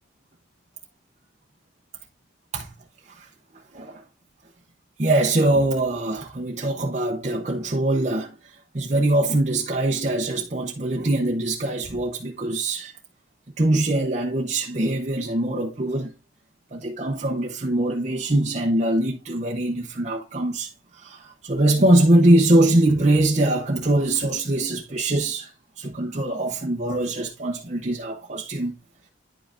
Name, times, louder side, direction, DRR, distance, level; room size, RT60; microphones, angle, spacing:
voice 1, 5.0-8.3 8.7-12.9 13.6-16.1 16.7-20.7 21.0-25.5 25.8-28.7, right 1 dB, 35° right, 0.8 m, -22 dB
10.0 x 5.6 x 2.5 m
head